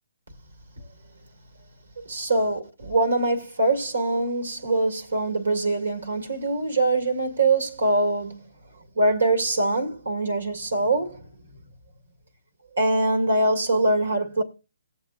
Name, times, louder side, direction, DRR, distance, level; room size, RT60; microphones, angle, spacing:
voice 1, 2.1-8.5 8.9-11.3 12.8-14.4, right 2 dB, 80° right, 2.2 m, -23 dB
18.5 x 7.3 x 2.5 m
hypercardioid pair, 145°, 0 cm